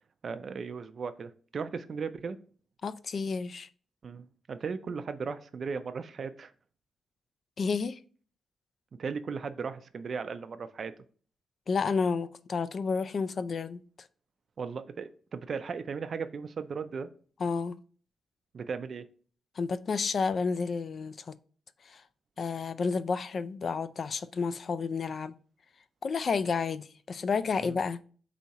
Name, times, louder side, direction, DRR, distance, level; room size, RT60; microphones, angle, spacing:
voice 1, 0.2-2.4 4.0-6.5 9.0-10.9 14.6-17.1 18.5-19.0 27.6-27.7, right 5 dB, 50° right, 0.4 m, -36 dB
voice 2, 2.8-3.7 7.6-8.0 11.7-13.8 17.4-17.8 19.6-21.3 21.8-22.0 22.4-25.3 26.0-28.0, left 5 dB, 50° left, 0.3 m, -31 dB
4.1 x 2.8 x 4.6 m
cardioid pair, 95°, 0 cm